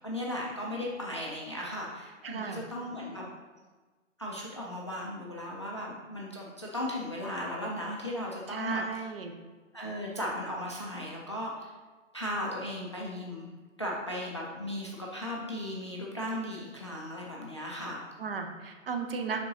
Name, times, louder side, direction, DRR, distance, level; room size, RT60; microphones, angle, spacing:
voice 1, 0.0-3.3 4.2-9.1 9.7-11.7 12.1-13.5 13.8-18.0, left 1 dB, 25° left, -4 dB, 0.4 m, -36 dB
voice 2, 2.2-2.6 8.5-9.3 18.2-19.4, right 5 dB, 45° right, 4 dB, 0.8 m, -35 dB
10.0 x 3.8 x 2.7 m, 1.3 s
hypercardioid pair, 155°, 39 cm